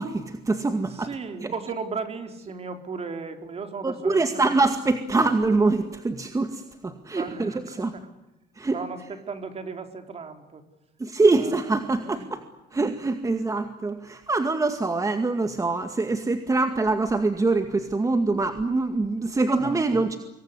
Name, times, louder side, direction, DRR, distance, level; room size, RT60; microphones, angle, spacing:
voice 1, 0.0-1.1 1.4-1.5 3.8-7.5 7.8-7.9 8.6-8.8 11.0-12.4 12.7-20.2, right 3 dB, 20° right, 7 dB, 2.1 m, -24 dB
voice 2, 0.9-4.4 7.1-8.1 8.7-10.7 11.3-11.6 12.0-12.3 12.7-12.8 19.5-19.9, right 5 dB, 35° right, 7 dB, 4.2 m, -36 dB
25.5 x 21.5 x 9.9 m, 0.98 s
cardioid pair, 110°, 17 cm